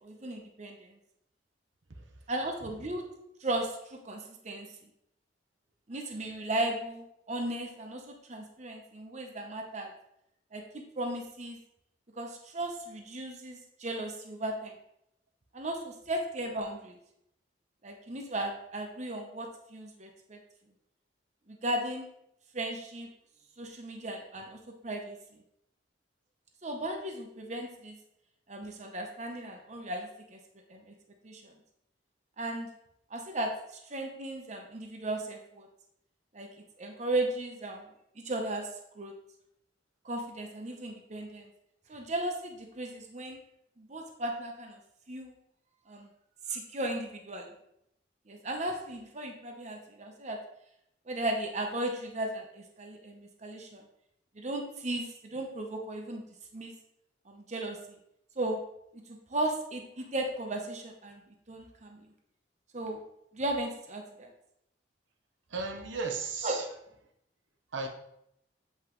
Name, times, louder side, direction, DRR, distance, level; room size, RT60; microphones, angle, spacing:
voice 1, 0.0-0.8 2.3-3.1 3.4-4.7 5.9-9.9 10.5-11.6 12.2-14.7 15.5-17.0 17.8-20.4 21.5-22.1 22.5-23.1 23.6-24.6 24.8-25.2 26.6-28.0 28.5-30.4 30.7-30.9 31.2-31.5 32.4-32.7 33.1-33.5 33.9-35.7 36.3-36.5 36.8-37.9 38.2-38.7 39.0-39.1 40.0-41.5 41.9-43.4 43.8-44.8 45.1-45.3 45.9-46.1 46.5-47.5 48.3-50.4 51.1-53.8 54.4-56.2 56.5-56.7 57.3-57.8 58.4-58.6 59.1-61.2 61.5-62.0 62.7-63.0 63.3-64.3 66.4-66.5, right 1 dB, 40° right, 3 dB, 0.8 m, -36 dB
voice 2, 65.5-66.7 67.7-67.9, right 4 dB, 85° right, 3 dB, 0.9 m, -35 dB
8.0 x 5.5 x 3.1 m, 0.77 s
head